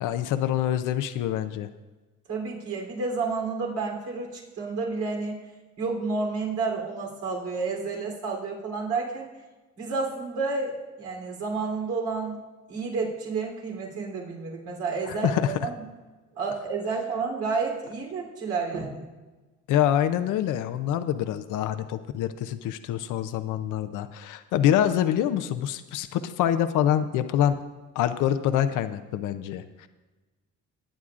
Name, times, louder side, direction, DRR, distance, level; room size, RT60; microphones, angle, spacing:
voice 1, 0.0-1.7 15.1-15.7 19.7-27.6 28.0-29.9, left 10 dB, 90° left, 10 dB, 0.6 m, -26 dB
voice 2, 2.3-5.4 5.8-9.3 9.8-12.4 12.7-15.8 16.4-19.1, right 4 dB, 75° right, -1 dB, 3.3 m, -30 dB
20.0 x 9.4 x 2.5 m, 1.2 s
cardioid pair, 90°, 30 cm